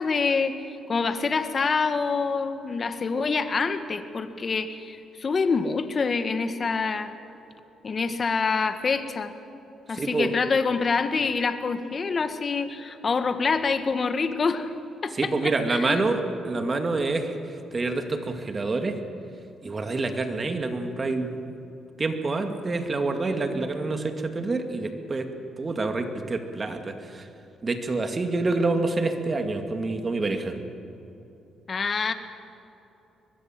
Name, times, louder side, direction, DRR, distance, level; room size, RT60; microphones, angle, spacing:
voice 1, 0.0-7.1 7.8-9.3 9.9-14.7 15.0-16.0 31.7-32.1, left 4 dB, 40° left, 9 dB, 1.7 m, -26 dB
voice 2, 9.9-10.3 15.2-16.2 16.4-17.3 17.7-19.0 19.6-21.3 22.0-25.3 25.6-27.2 27.6-30.6, right 3 dB, 30° right, 6 dB, 2.3 m, -27 dB
23.5 x 20.5 x 7.7 m, 2.9 s
cardioid pair, 90°, 0 cm